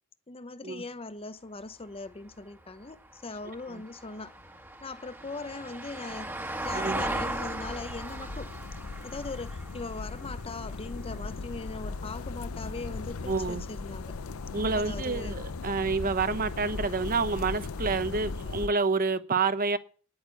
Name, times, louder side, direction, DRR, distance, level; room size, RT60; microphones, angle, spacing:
voice 1, 0.3-4.3 4.8-6.3 6.6-8.5 9.0-14.2 14.8-15.4, left 3 dB, 25° left, 0.8 m, -40 dB
Vehicle, 1.6-12.1 14.4-14.5, right 1 dB, 10° right, 1.5 m, -38 dB
voice 2, 6.7-7.1 13.3-13.6 14.5-19.8, right 4 dB, 45° right, 1.0 m, -28 dB
sound 1, 7.0-18.7, left 3 dB, 80° left, 0.6 m, -38 dB
10.0 x 8.9 x 8.2 m
head